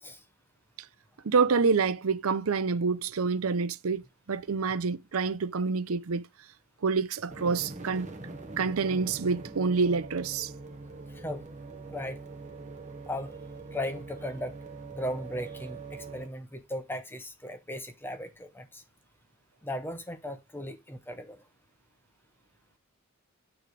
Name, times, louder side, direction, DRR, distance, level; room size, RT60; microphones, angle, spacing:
voice 1, 1.2-4.0 4.3-6.2 6.8-8.1 8.6-10.5, right 4 dB, 75° right, 0.6 m, -27 dB
sound 1, 7.3-16.3, right 3 dB, 35° right, 1.1 m, -43 dB
voice 2, 11.1-11.5 11.9-12.2 13.1-13.4 13.7-14.6 14.9-18.8 19.6-21.4, left 1 dB, 10° left, 0.8 m, -37 dB
9.4 x 3.2 x 5.1 m
head